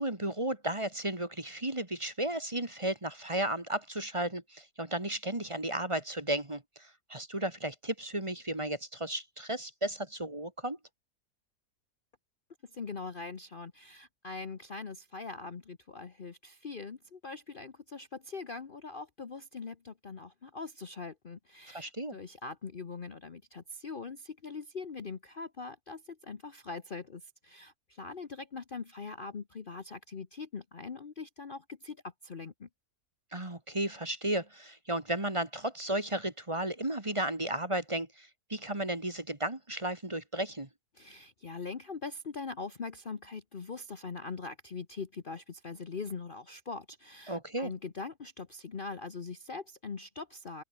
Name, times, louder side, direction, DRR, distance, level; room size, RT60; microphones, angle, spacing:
voice 1, 0.0-10.8 21.7-22.2 33.3-40.7 47.3-47.7, right 1 dB, 20° right, 2.0 m, -34 dB
voice 2, 12.7-32.0 32.2-32.7 41.0-50.6, left 4 dB, 40° left, 1.1 m, -42 dB
open air
omnidirectional pair, 1.6 m